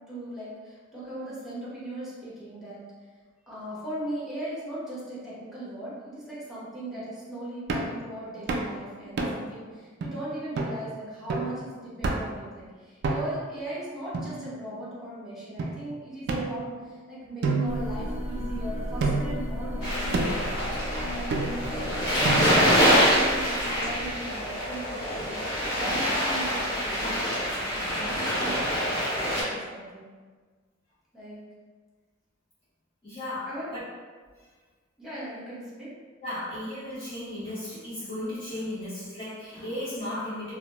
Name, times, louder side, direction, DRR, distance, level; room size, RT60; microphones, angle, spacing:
voice 1, 0.1-2.8 3.5-20.7 21.0-21.9 22.2-25.4 25.7-30.1 31.1-31.4 33.4-33.7 35.0-35.9, right 1 dB, ahead, -10 dB, 0.8 m, -38 dB
sound 1, 7.7-8.0 8.5-8.7 9.2-9.5 10.0-10.1 10.6-10.8 11.3-11.6 12.0-12.4 13.0-13.5 14.1-14.9 15.6-15.7 16.3-17.0 17.4-18.5 19.0-19.4 20.1-20.5 21.3-21.8 22.2-22.8, right 3 dB, 55° right, 0.3 m, -30 dB
sound 2, 17.7-24.1, equal, 75° left, 0.5 m, -35 dB
sound 3, 19.8-29.4, equal, 55° left, 0.9 m, -25 dB
voice 2, 33.0-33.8 36.2-40.5, left 1 dB, 30° left, -12 dB, 0.8 m, -35 dB
2.2 x 2.1 x 2.8 m, 1.5 s
head